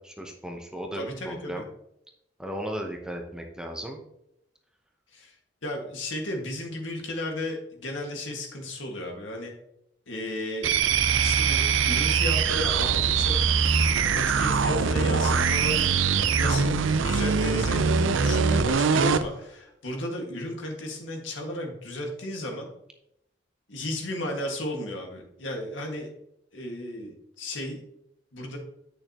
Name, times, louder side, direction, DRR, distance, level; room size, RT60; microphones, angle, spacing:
voice 1, 0.0-1.6 2.4-4.0, equal, 5° right, 2 dB, 0.8 m, -36 dB
voice 2, 0.9-1.6 5.1-5.3 5.6-9.5 10.1-10.7 11.2-13.4 14.1-15.8 16.4-17.9 18.2-22.7 23.7-26.1 26.5-27.8 28.3-28.6, left 1 dB, 80° left, 1 dB, 1.9 m, -34 dB
sound 1, 10.6-19.3, right 5 dB, 85° right, 0.5 m, -23 dB
8.9 x 6.6 x 3.0 m, 0.79 s
head